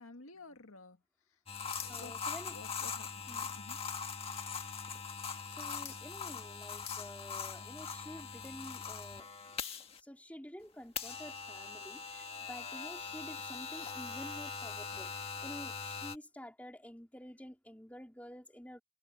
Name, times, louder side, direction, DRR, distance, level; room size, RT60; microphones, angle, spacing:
voice 1, 0.0-1.4 1.8-3.3 3.5-3.8, left 3 dB, 75° left, 2.0 m, -53 dB
sound 1, 1.5-10.0 11.0-16.2, left 5 dB, 25° left, 1.8 m, -41 dB
voice 2, 1.9-2.6 3.3-3.5 5.5-9.3 10.0-18.8, equal, 5° left, 3.8 m, -50 dB
head